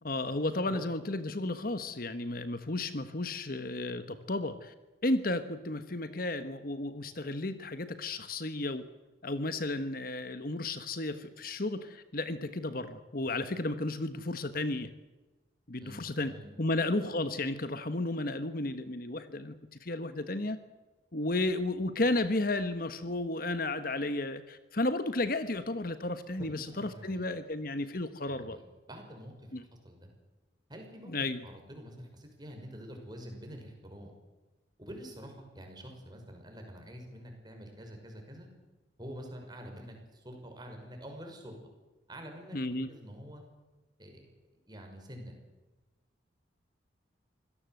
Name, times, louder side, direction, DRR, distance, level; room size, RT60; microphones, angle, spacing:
voice 1, 0.0-4.7 5.0-8.9 9.2-14.9 15.7-16.3 16.6-19.6 19.8-20.6 21.1-28.6 29.5-29.6 31.1-31.4 42.5-42.9, left 2 dB, 50° left, 11 dB, 1.3 m, -33 dB
voice 2, 15.8-16.5 26.4-27.3 28.2-30.1 30.7-31.1 31.4-34.1 34.8-38.5 39.0-41.6 42.1-42.6 42.9-43.4 44.0-44.2 44.7-45.4, equal, 20° right, 3 dB, 6.0 m, -47 dB
25.5 x 17.5 x 8.0 m, 1.1 s
head